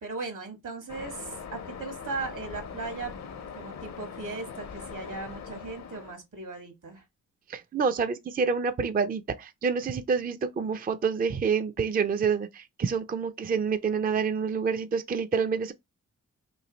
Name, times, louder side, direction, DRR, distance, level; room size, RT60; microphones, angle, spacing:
voice 1, 0.0-3.1 3.5-7.0, right 3 dB, 70° right, 1.5 m, -37 dB
Waves surf, 0.9-6.1, left 6 dB, 55° left, 0.7 m, -41 dB
voice 2, 7.5-15.7, right 5 dB, 30° right, 0.4 m, -27 dB
3.1 x 2.6 x 3.8 m
cardioid pair, 45°, 32 cm